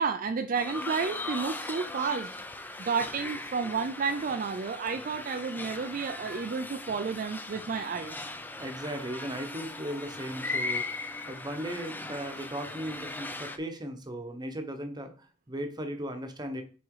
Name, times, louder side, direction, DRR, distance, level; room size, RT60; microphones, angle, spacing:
voice 1, 0.0-2.3 2.8-8.3, right 5 dB, 45° right, 7 dB, 0.4 m, -31 dB
sound 1, 0.6-13.6, left 2 dB, 10° left, 0.5 m, -38 dB
voice 2, 8.6-16.6, right 1 dB, 20° right, 6 dB, 1.0 m, -37 dB
6.0 x 4.3 x 4.8 m, 0.38 s
head